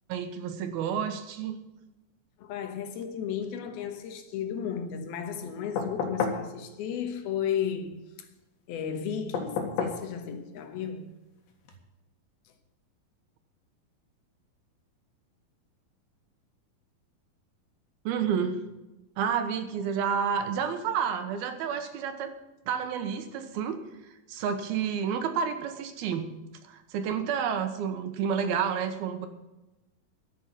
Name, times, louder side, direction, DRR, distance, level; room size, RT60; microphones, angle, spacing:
voice 1, 0.1-1.6 18.0-18.6 19.2-22.3 22.7-23.8 24.3-26.2 26.7-29.3, right 7 dB, 90° right, 3.1 m, -30 dB
voice 2, 2.4-8.0 8.7-11.1, left 8 dB, 90° left, 3.2 m, -34 dB
sound 1, 5.8-6.5 9.3-10.0 11.7-11.8, left 5 dB, 70° left, 3.4 m, -30 dB
12.0 x 9.8 x 7.4 m
omnidirectional pair, 4.2 m